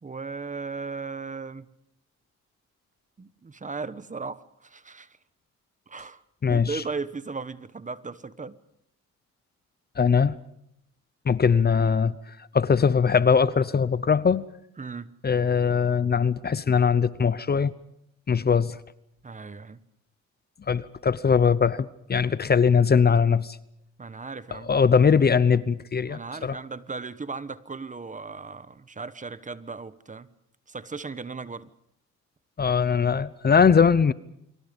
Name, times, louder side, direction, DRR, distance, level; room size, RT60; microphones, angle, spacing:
voice 1, 0.0-1.7 3.2-5.2 5.9-6.2 6.5-8.6 14.8-15.1 19.2-19.8 24.0-24.7 26.1-30.3 30.7-31.7, right 4 dB, 25° right, 1.3 m, -36 dB
voice 2, 6.4-6.8 10.0-10.4 11.3-12.1 12.5-14.5 15.2-17.7 18.3-18.8 20.7-23.6 24.5-26.6 32.6-34.1, left 6 dB, 30° left, 0.9 m, -21 dB
29.5 x 24.5 x 5.4 m
cardioid pair, 90°, 30 cm